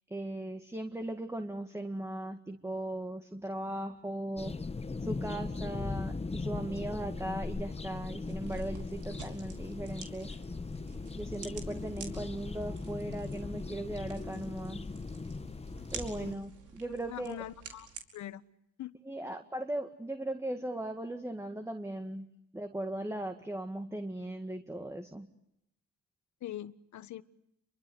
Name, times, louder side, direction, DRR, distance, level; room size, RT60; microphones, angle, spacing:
voice 1, 0.1-4.6 5.0-10.3 11.2-14.8 15.9-17.4 19.0-22.3 22.5-25.3, right 1 dB, 10° right, 6 dB, 2.0 m, -38 dB
sound 1, 4.4-16.3, left 3 dB, 20° left, 1.2 m, -39 dB
sound 2, 8.2-18.0, right 6 dB, 80° right, 4.9 m, -50 dB
voice 2, 16.1-16.4 17.1-17.9 18.1-18.4 18.8-19.0 26.4-27.2, left 13 dB, 70° left, 14 dB, 1.4 m, -43 dB
29.5 x 23.5 x 8.0 m, 0.82 s
cardioid pair, 90°, 30 cm